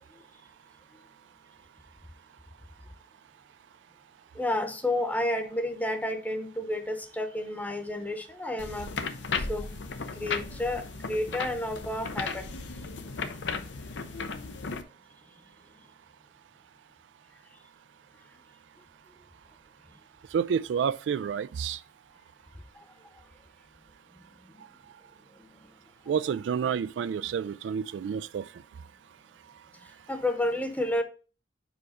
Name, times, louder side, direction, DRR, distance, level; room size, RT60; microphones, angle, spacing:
voice 1, 4.3-8.9 9.4-9.7 10.1-12.5 22.7-22.9 25.4-25.5 30.1-31.0, left 1 dB, 10° left, 0.9 m, -31 dB
sound 1, 8.6-14.8, left 4 dB, 80° left, 0.7 m, -35 dB
voice 2, 20.3-21.8 26.1-28.5, right 7 dB, 80° right, 0.3 m, -29 dB
4.9 x 4.8 x 5.0 m
head